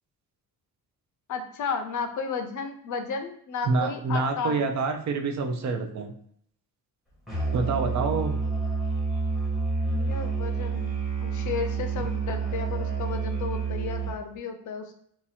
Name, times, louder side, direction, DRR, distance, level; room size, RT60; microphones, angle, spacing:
voice 1, 1.3-4.6 9.9-14.9, left 5 dB, 50° left, 6 dB, 0.6 m, -33 dB
voice 2, 3.6-6.1 7.5-8.4, right 4 dB, 45° right, 6 dB, 0.5 m, -27 dB
Musical instrument, 7.3-14.3, right 4 dB, ahead, 0.9 m, -29 dB
2.8 x 2.3 x 4.2 m, 0.67 s
cardioid pair, 145°, 40 cm